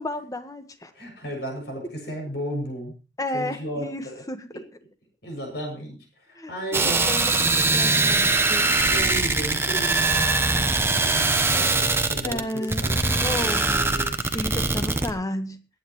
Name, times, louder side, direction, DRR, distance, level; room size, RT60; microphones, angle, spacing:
voice 1, 0.0-0.9 3.2-4.5 6.4-8.7 12.2-12.8 13.2-13.8 14.3-15.6, left 1 dB, 20° left, 9 dB, 1.4 m, -32 dB
voice 2, 0.9-2.9 3.3-4.2 5.2-7.6 8.8-10.7 11.0-14.1, right 1 dB, 65° left, 2 dB, 7.1 m, -34 dB
sound 1, 6.7-15.1, right 3 dB, 15° right, 1.1 m, -22 dB
23.0 x 9.3 x 3.1 m, 0.31 s
head